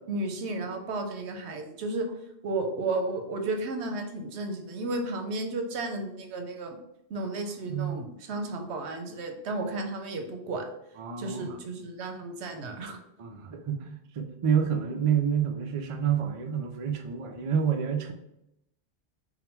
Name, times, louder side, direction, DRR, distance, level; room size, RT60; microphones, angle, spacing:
voice 1, 0.1-2.1 2.4-6.8 7.1-10.7 11.2-13.0, right 2 dB, 85° right, 4 dB, 0.9 m, -33 dB
voice 2, 11.0-11.5 13.2-18.1, right 8 dB, 55° right, 4 dB, 0.4 m, -28 dB
3.7 x 2.1 x 4.3 m, 0.83 s
omnidirectional pair, 1.1 m